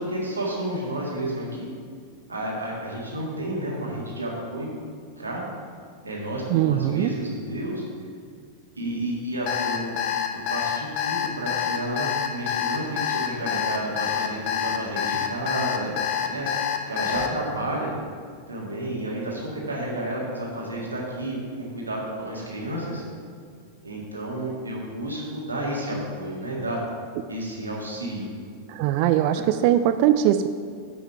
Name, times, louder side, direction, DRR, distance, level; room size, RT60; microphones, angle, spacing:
voice 1, 0.0-1.7 2.3-4.7 5.2-5.4 6.0-7.8 8.8-10.0 10.3-17.9 18.5-23.0 23.8-26.8 27.3-28.3 29.3-29.4, right 1 dB, 80° right, -3 dB, 1.9 m, -31 dB
voice 2, 6.5-7.1 28.7-30.5, right 11 dB, 45° right, 10 dB, 0.3 m, -21 dB
Alarm, 9.5-17.3, left 9 dB, 45° left, 0.8 m, -26 dB
9.2 x 5.7 x 4.6 m, 2.1 s
figure-of-eight pair, 90°, 0 cm